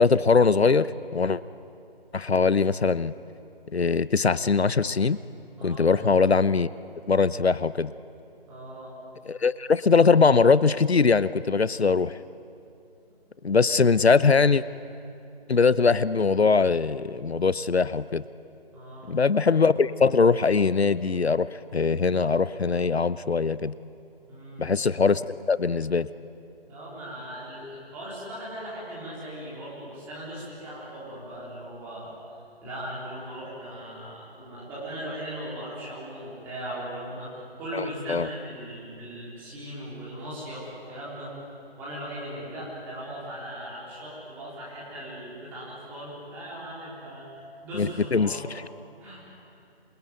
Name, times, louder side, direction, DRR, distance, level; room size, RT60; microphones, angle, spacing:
voice 1, 0.0-1.4 2.1-3.1 3.7-5.2 5.6-6.7 7.1-7.9 9.3-12.2 13.4-14.6 15.5-18.2 19.1-21.5 21.7-23.7 24.6-26.1 37.7-38.3 47.7-48.4, left 5 dB, 90° left, 16 dB, 0.9 m, -21 dB
voice 2, 5.6-6.0 8.5-8.9 18.7-19.2 24.3-24.7 26.7-32.2 32.6-37.3 37.6-41.3 41.8-48.5 49.0-49.2, right 1 dB, 5° right, -8 dB, 3.9 m, -38 dB
27.0 x 22.5 x 9.4 m, 2.6 s
figure-of-eight pair, 170°, 31 cm